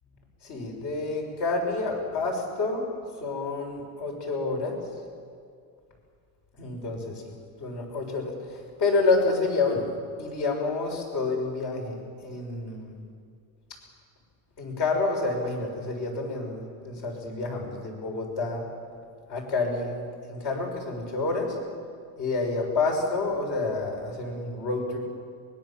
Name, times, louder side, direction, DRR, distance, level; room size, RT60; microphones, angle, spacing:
voice 1, 0.4-2.9 3.2-4.8 6.6-9.9 10.2-13.0 14.6-18.6 19.3-21.6 22.2-25.0, left 3 dB, 55° left, 2 dB, 6.0 m, -29 dB
24.0 x 21.5 x 7.4 m, 2.2 s
cardioid pair, 160°, 38 cm